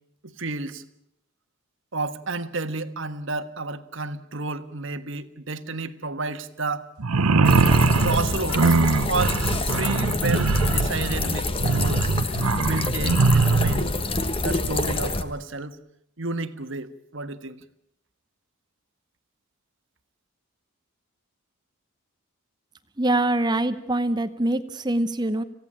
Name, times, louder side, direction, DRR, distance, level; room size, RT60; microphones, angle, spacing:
voice 1, 0.2-0.8 1.9-6.9 8.0-8.8 9.1-12.1 12.6-13.9 14.4-15.8 16.2-17.6, right 3 dB, 55° right, 1.4 m, -31 dB
sound 1, 7.0-13.8, right 3 dB, 85° right, 0.9 m, -21 dB
sound 2, 7.4-15.2, left 2 dB, 25° left, 1.3 m, -27 dB
voice 2, 23.0-25.4, right 1 dB, 20° right, 0.8 m, -24 dB
27.0 x 16.5 x 8.6 m
head